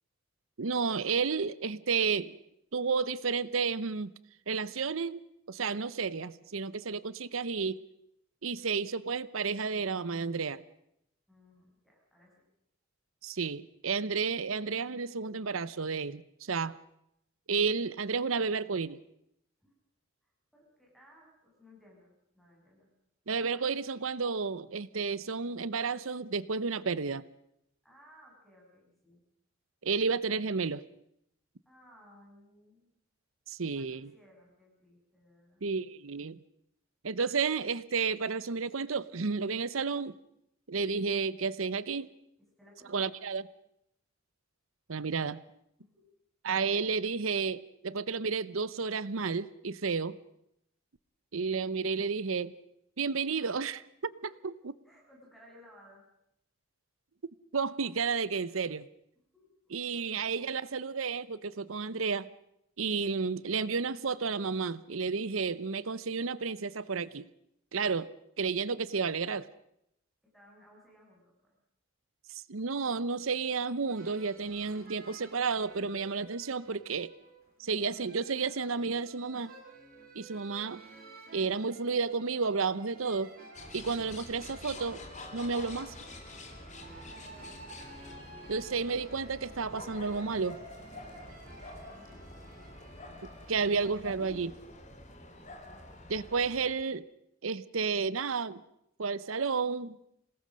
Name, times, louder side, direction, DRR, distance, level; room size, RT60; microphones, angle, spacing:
voice 1, 0.6-2.4 2.7-4.1 4.5-5.2 5.5-7.8 8.4-10.6 13.2-16.8 17.5-19.0 23.3-27.2 29.8-30.8 33.5-34.1 35.6-36.4 37.0-40.1 40.7-42.1 42.9-43.4 44.9-45.4 46.4-50.2 51.3-52.5 53.0-54.5 57.5-58.8 59.7-62.3 62.8-67.3 67.7-68.1 68.4-69.5 72.3-77.1 77.6-79.5 80.1-80.8 81.3-83.3 83.7-85.0 85.3-85.9 88.5-90.6 93.5-94.5 96.1-97.1 97.4-98.6 99.0-100.0, right 5 dB, 80° right, 18 dB, 0.8 m, -31 dB
voice 2, 11.3-12.4 19.6-19.7 20.2-22.9 27.8-29.2 31.7-32.9 33.6-35.6 42.6-43.0 45.8-46.1 54.0-54.4 54.8-56.0 59.3-60.7 70.2-71.6 86.9-87.7 91.9-92.7, equal, ahead, -3 dB, 7.3 m, -60 dB
sound 1, 73.9-93.7, right 3 dB, 45° right, 5.3 m, -53 dB
sound 2, 83.5-96.7, left 2 dB, 35° left, 3.3 m, -47 dB
27.0 x 19.0 x 6.4 m, 0.77 s
head